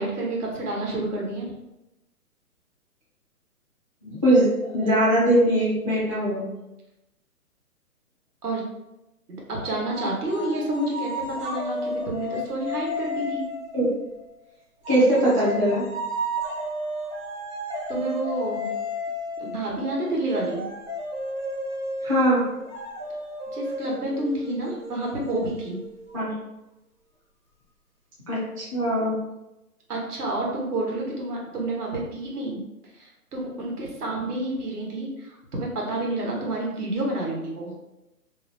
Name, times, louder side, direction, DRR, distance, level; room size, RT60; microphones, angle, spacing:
voice 1, 0.0-1.5 8.4-8.6 9.3-13.4 17.9-18.7 19.4-20.6 23.5-25.8 29.9-32.6 32.9-37.7, right 1 dB, 75° right, -2 dB, 1.1 m, -29 dB
voice 2, 4.0-4.5 4.7-6.4 13.7-13.9 14.9-15.9 22.0-22.4 26.1-26.3 28.3-29.2, right 1 dB, 25° right, -9 dB, 0.4 m, -21 dB
sound 1, 9.9-14.3 14.8-26.2, left 1 dB, 50° right, 1.0 m, -33 dB
2.6 x 2.1 x 2.5 m, 0.92 s
hypercardioid pair, 145°, 46 cm